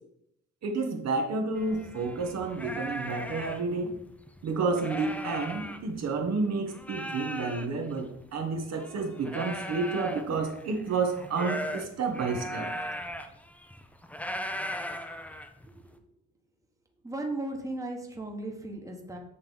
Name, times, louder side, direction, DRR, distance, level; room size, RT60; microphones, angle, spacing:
voice 1, 0.6-3.9 4.4-12.7, right 4 dB, 60° right, 3 dB, 1.1 m, -30 dB
sound 1, 1.6-6.3 6.7-15.9, equal, 5° left, 0.7 m, -38 dB
voice 2, 17.0-19.2, right 2 dB, 10° right, 1 dB, 1.2 m, -36 dB
8.2 x 3.0 x 5.3 m, 0.80 s
cardioid pair, 90°, 30 cm